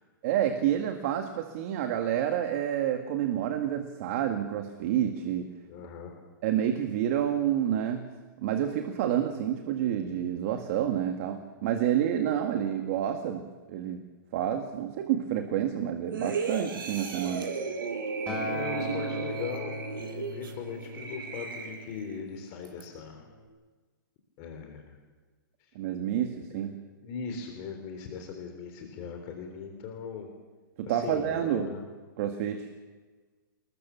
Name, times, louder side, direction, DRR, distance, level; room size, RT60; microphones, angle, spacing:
voice 1, 0.2-5.5 6.4-8.0 8.4-14.0 14.3-17.5 25.8-26.8 30.8-31.7 32.2-32.7, right 10 dB, 40° right, 5 dB, 2.1 m, -29 dB
voice 2, 5.7-6.1 18.3-23.3 24.4-25.0 27.0-30.3 30.9-31.9, left 6 dB, 30° left, 3 dB, 3.7 m, -39 dB
sound 1, 16.1-22.2 22.6-22.8, right 5 dB, 80° right, 5.5 m, -35 dB
Acoustic guitar, 18.3-22.6 23.4-23.5, left 1 dB, 10° left, 6.8 m, -38 dB
28.5 x 20.5 x 7.2 m, 1.3 s
hypercardioid pair, 165°, 11 cm